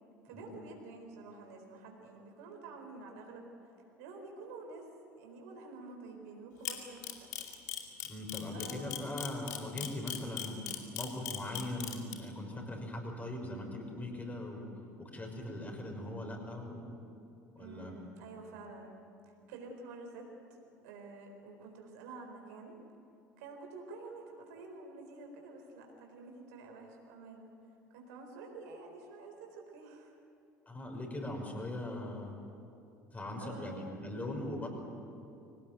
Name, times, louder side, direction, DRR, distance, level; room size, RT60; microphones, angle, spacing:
voice 1, 0.2-3.7 4.0-4.9 5.1-7.3 8.5-9.1 17.6-18.9 19.2-22.7 23.4-27.5 27.9-30.2 33.4-33.8, right 3 dB, 60° right, 2 dB, 4.2 m, -49 dB
Camera, 6.7-12.1, left 11 dB, 70° left, 2.4 m, -38 dB
voice 2, 8.0-14.6 15.0-16.9 17.6-17.9 30.7-32.4 33.1-34.7, left 1 dB, 15° left, 1 dB, 6.0 m, -40 dB
24.5 x 18.0 x 9.4 m, 2.7 s
figure-of-eight pair, 65°, 10 cm